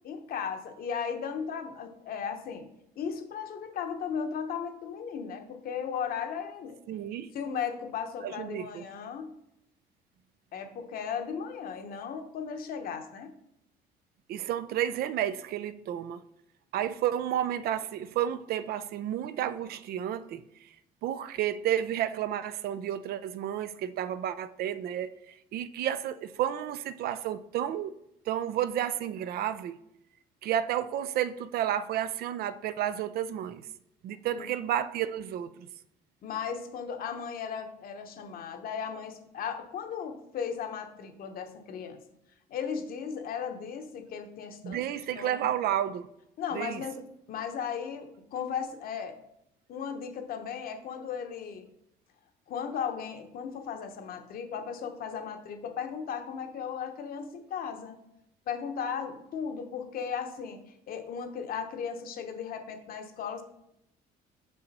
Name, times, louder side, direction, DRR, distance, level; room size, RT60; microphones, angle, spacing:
voice 1, 0.0-2.7 3.0-6.8 7.3-9.3 10.5-13.3 34.4-34.5 36.2-42.0 42.5-44.8 45.2-45.5 46.4-49.2 49.7-51.7 52.5-58.0 58.5-60.6 60.9-63.4, left 7 dB, 60° left, 1.0 m, -36 dB
voice 2, 6.9-7.3 8.2-8.8 14.3-16.2 16.7-20.7 21.0-27.9 28.3-29.8 30.4-33.6 34.0-35.7 44.6-46.1 46.5-46.8, right 11 dB, 65° right, 0.5 m, -31 dB
6.0 x 5.5 x 4.1 m
cardioid pair, 110°, 17 cm